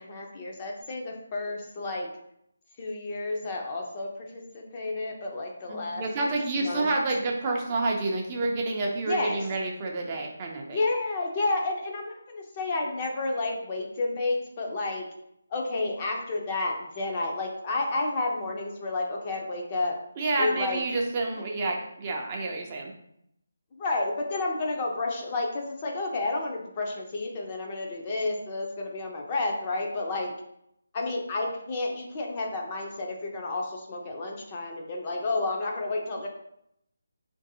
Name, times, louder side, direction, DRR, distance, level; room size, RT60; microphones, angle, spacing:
voice 1, 0.0-2.1 2.8-6.0 6.6-6.9 9.1-9.5 10.7-15.1 15.5-20.0 20.4-20.8 21.3-21.4 23.8-30.3 30.9-36.3, left 2 dB, 25° left, 0 dB, 0.5 m, -31 dB
voice 2, 5.7-10.8 20.2-22.9, right 2 dB, 25° right, 0 dB, 0.4 m, -29 dB
3.9 x 2.6 x 2.6 m, 0.75 s
figure-of-eight pair, 165°, 0 cm